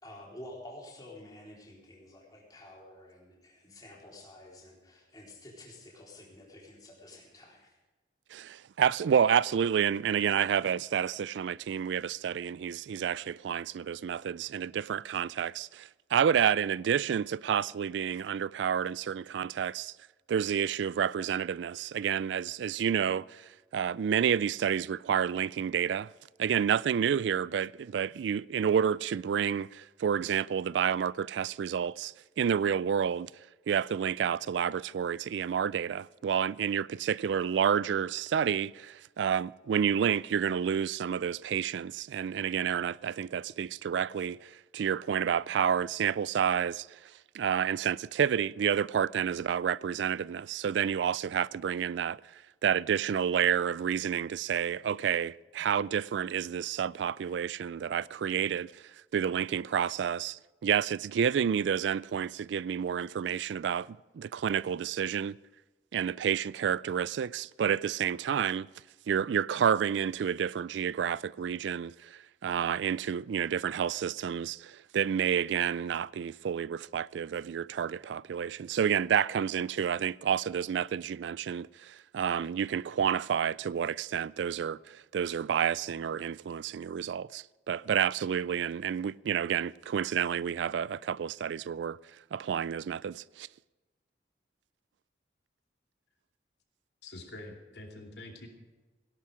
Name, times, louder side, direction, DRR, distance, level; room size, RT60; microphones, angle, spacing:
voice 1, 0.0-7.8, left 1 dB, 20° left, 3.9 m, -50 dB
voice 2, 8.3-19.9 20.3-26.1 26.4-33.3 33.7-47.0 47.3-52.2 52.6-58.8 59.1-65.4 65.9-68.7 69.1-92.0 92.3-93.5, right 8 dB, 75° right, 0.3 m, -29 dB
voice 3, 97.0-98.5, left 2 dB, 70° left, 2.7 m, -46 dB
17.0 x 11.5 x 4.9 m
head